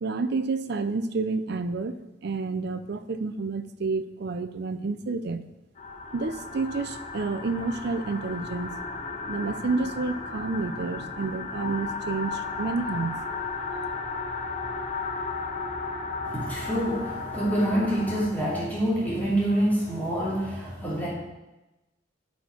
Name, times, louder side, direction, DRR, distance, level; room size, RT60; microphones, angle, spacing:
voice 1, 0.0-5.4 6.1-8.7 9.3-13.2, right 3 dB, 55° right, 10 dB, 0.5 m, -29 dB
sound 1, 5.8-18.3, left 4 dB, 40° left, 1.0 m, -34 dB
voice 2, 16.2-21.1, right 1 dB, 10° left, -8 dB, 2.4 m, -26 dB
11.0 x 4.3 x 4.4 m, 1.0 s
head